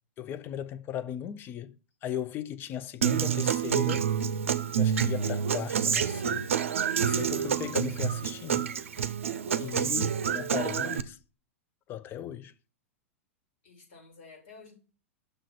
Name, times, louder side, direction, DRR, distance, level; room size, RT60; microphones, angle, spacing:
voice 1, 0.2-4.1 4.7-6.5 7.0-8.7 9.6-11.2 11.9-12.5, left 10 dB, 30° left, 0.5 m, -37 dB
Human voice / Acoustic guitar, 3.0-11.0, right 8 dB, 70° right, 0.5 m, -28 dB
voice 2, 9.5-10.0 13.6-14.7, left 3 dB, 60° left, 3.3 m, -51 dB
6.5 x 3.7 x 6.0 m
figure-of-eight pair, 95°, 7 cm